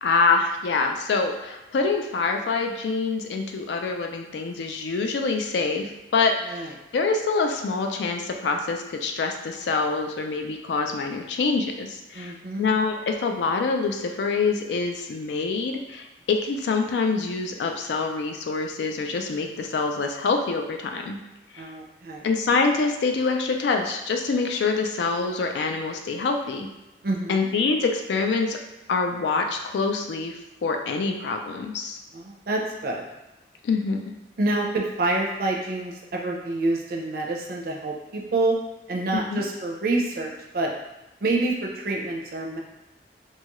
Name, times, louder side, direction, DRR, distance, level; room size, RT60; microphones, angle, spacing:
voice 1, 0.0-6.7 6.9-21.2 21.5-21.7 22.2-26.7 27.3-28.6 28.9-32.0 33.6-34.1 39.1-39.4, left 4 dB, 75° left, 4 dB, 0.4 m, -25 dB
voice 2, 12.1-12.7 21.6-22.3 27.0-27.5 32.1-33.1 34.4-38.5 38.9-40.7 41.2-42.6, right 2 dB, 55° right, 0 dB, 0.5 m, -27 dB
2.7 x 2.3 x 3.0 m, 1.0 s
head